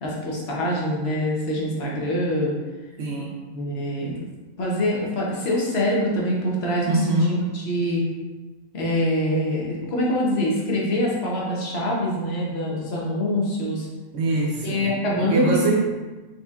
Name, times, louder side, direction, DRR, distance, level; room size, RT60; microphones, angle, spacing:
voice 1, 0.0-2.5 3.5-4.1 4.6-7.0 7.5-8.0 8.7-13.9 14.6-15.8, equal, 50° left, -3 dB, 1.1 m, -24 dB
voice 2, 3.0-3.3 6.9-7.5 14.1-14.9 15.2-15.8, right 2 dB, 60° right, -2 dB, 1.1 m, -23 dB
4.3 x 4.0 x 2.4 m, 1.2 s
omnidirectional pair, 1.6 m